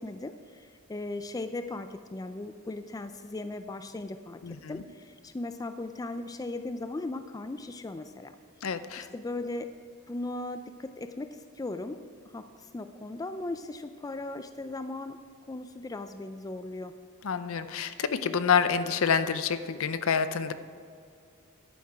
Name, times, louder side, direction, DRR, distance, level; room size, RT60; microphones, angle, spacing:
voice 1, 0.0-8.4 9.0-9.7 10.1-12.0 12.3-15.2 15.5-16.9, left 2 dB, 15° left, 9 dB, 0.3 m, -38 dB
voice 2, 8.6-9.1 17.2-20.5, left 6 dB, 65° left, 12 dB, 0.6 m, -27 dB
11.0 x 8.9 x 4.7 m, 2.3 s
head